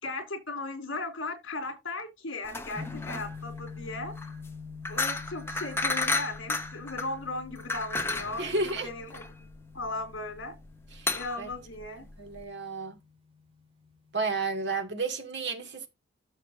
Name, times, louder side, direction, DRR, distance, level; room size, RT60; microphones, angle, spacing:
voice 1, 0.0-4.1 4.9-8.5 8.8-9.2 9.7-10.5 11.1-12.1, left 2 dB, 70° left, 3.7 m, -37 dB
sound 1, 2.4-12.4, left 3 dB, 10° left, 0.9 m, -33 dB
sound 2, 2.7-14.8, left 5 dB, 25° right, 3.2 m, -46 dB
voice 2, 8.4-8.9 10.9-11.5 12.2-13.0 14.1-15.9, right 3 dB, 55° right, 2.5 m, -32 dB
14.0 x 6.5 x 2.8 m
head